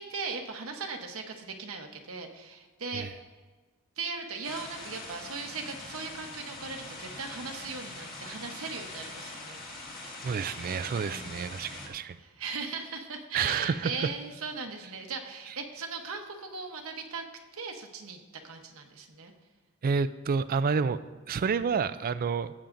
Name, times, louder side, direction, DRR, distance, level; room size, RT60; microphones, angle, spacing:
voice 1, 0.0-3.2 4.0-9.9 10.9-11.4 12.2-17.2 17.5-18.2 18.4-19.3, right 4 dB, 65° right, 3 dB, 1.0 m, -38 dB
sound 1, 4.4-11.9, left 2 dB, 40° left, 1.9 m, -43 dB
voice 2, 10.2-12.2 13.3-14.1 19.8-21.0 21.3-22.5, right 5 dB, 40° right, 14 dB, 0.3 m, -29 dB
15.0 x 8.5 x 2.6 m, 1.3 s
head